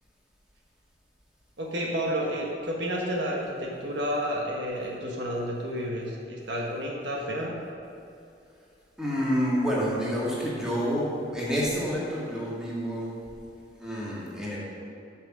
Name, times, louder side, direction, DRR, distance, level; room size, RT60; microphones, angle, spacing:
voice 1, 1.6-7.6, equal, 65° right, -2 dB, 1.3 m, -30 dB
voice 2, 9.0-13.1 13.8-14.6, equal, 5° right, -6 dB, 2.0 m, -28 dB
8.8 x 6.1 x 6.1 m, 2.6 s
head